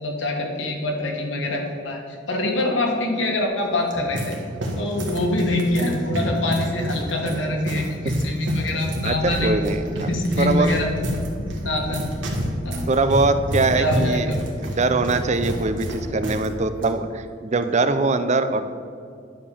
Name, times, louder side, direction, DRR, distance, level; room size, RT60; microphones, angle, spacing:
voice 1, 0.0-4.4 4.8-9.5 10.1-10.9 11.4-12.0 12.6-12.9 13.6-14.4, left 1 dB, 90° left, 1 dB, 1.8 m, -24 dB
sound 1, 3.6-16.5 16.7-16.9 17.6-17.9, equal, 80° right, 1.7 m, -30 dB
voice 2, 9.0-10.1 10.4-10.7 12.9-14.3 14.6-18.7, right 3 dB, 40° right, 10 dB, 0.6 m, -22 dB
sound 2, 9.1-16.2, equal, ahead, 0.8 m, -35 dB
11.0 x 5.3 x 7.0 m, 2.3 s
head